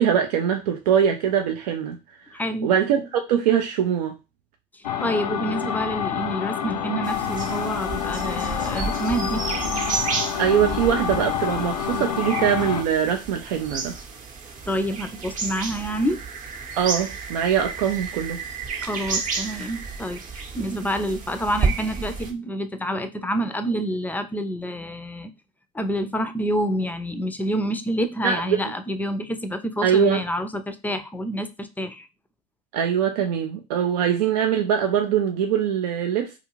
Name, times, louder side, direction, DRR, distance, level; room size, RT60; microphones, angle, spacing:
voice 1, 0.0-2.0 2.3-4.2 10.4-13.9 16.7-18.4 28.2-28.6 29.8-30.2 32.7-36.4, right 8 dB, 80° right, 0.4 m, -22 dB
voice 2, 2.3-2.7 4.7-9.5 14.6-16.2 18.8-25.3 25.7-32.1, equal, 10° left, 0.4 m, -28 dB
sound 1, 4.8-12.8, left 8 dB, 90° left, 0.4 m, -28 dB
sound 2, 7.0-22.3, right 4 dB, 40° right, 0.8 m, -31 dB
2.4 x 2.4 x 3.0 m
hypercardioid pair, 80°, 20 cm